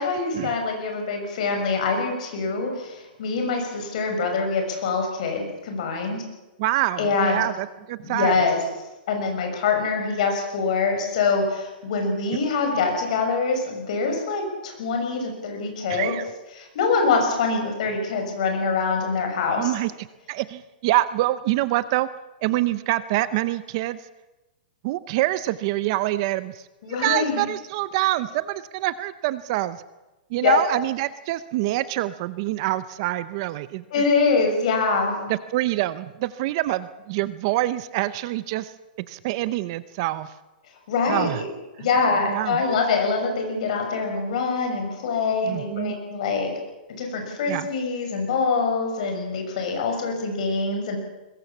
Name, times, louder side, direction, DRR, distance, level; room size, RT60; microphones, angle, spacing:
voice 1, 0.0-6.2 7.0-7.4 8.0-8.6 9.1-16.2 16.6-19.7 26.8-27.4 30.4-30.6 33.9-35.3 40.9-41.5 41.8-46.5 46.9-51.0, left 4 dB, 45° left, 4 dB, 6.4 m, -24 dB
voice 2, 6.6-8.4 15.9-16.2 19.6-19.9 20.3-22.1 22.4-24.0 24.8-26.5 27.0-29.8 30.3-33.8 35.5-38.7 39.1-40.3 41.1-41.4 42.3-42.6 45.4-46.0 47.5-47.7, right 16 dB, 30° right, 15 dB, 0.6 m, -25 dB
21.5 x 21.5 x 7.2 m, 1.1 s
hypercardioid pair, 170°, 5 cm